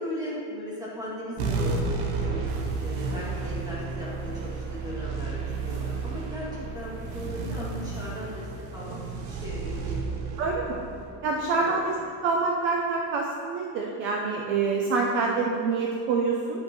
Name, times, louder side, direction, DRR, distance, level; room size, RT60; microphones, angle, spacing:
voice 1, 0.0-9.0 9.2-10.2 11.6-11.8, left 1 dB, 10° right, -8 dB, 2.2 m, -38 dB
sound 1, 1.4-12.2, right 4 dB, 50° right, 1.2 m, -32 dB
voice 2, 10.4-10.9 11.2-11.9 12.2-16.6, right 4 dB, 30° right, 0 dB, 0.4 m, -26 dB
10.5 x 8.9 x 3.0 m, 2.4 s
cardioid pair, 175°, 45 cm